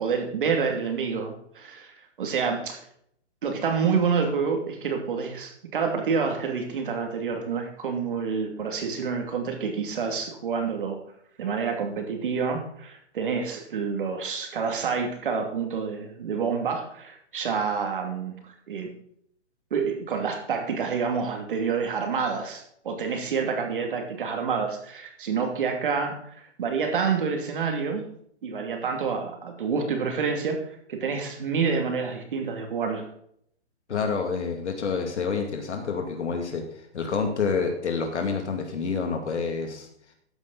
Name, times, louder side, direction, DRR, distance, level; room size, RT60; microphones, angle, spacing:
voice 1, 0.0-2.8 3.4-11.0 11.4-18.9 19.7-28.0 28.4-33.1, right 5 dB, 45° right, 4 dB, 2.6 m, -28 dB
voice 2, 33.9-36.6 36.9-39.9, left 5 dB, 75° left, 4 dB, 2.4 m, -28 dB
13.5 x 8.9 x 4.0 m, 0.68 s
hypercardioid pair, 170°, 35 cm